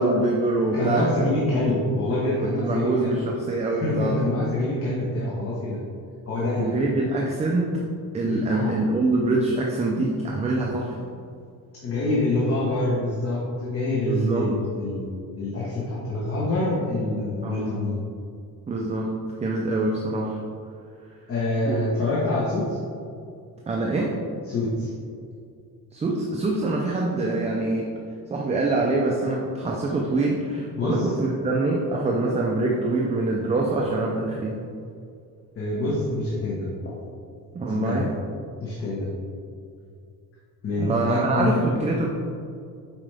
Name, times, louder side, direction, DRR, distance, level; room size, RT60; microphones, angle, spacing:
voice 1, 0.0-1.3 2.6-4.3 6.6-7.8 8.1-11.0 14.1-14.5 17.4-17.8 18.7-20.4 21.7-21.8 23.7-24.2 25.9-27.9 28.3-34.6 37.5-38.1 40.8-42.1, right 2 dB, 20° right, -2 dB, 0.4 m, -25 dB
voice 2, 0.7-3.2 3.8-5.8 6.3-6.7 8.2-8.8 11.8-18.0 21.3-22.8 24.5-24.9 30.8-31.1 35.5-36.7 37.7-38.1 38.6-39.1 40.6-41.6, left 2 dB, 35° left, -6 dB, 1.1 m, -26 dB
7.5 x 4.9 x 3.4 m, 2.4 s
cardioid pair, 175°, 38 cm